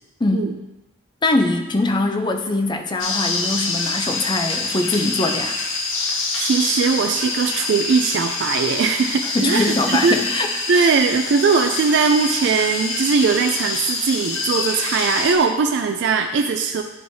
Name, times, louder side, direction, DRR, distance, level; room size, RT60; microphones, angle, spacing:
voice 1, 0.2-0.5 1.2-5.6 9.2-10.9, left 2 dB, 20° left, 6 dB, 0.4 m, -22 dB
sound 1, 3.0-15.3, left 3 dB, 75° left, 1.1 m, -26 dB
voice 2, 6.4-10.2 10.7-16.8, right 5 dB, 55° right, 5 dB, 0.3 m, -20 dB
10.0 x 4.7 x 2.7 m, 1.0 s
head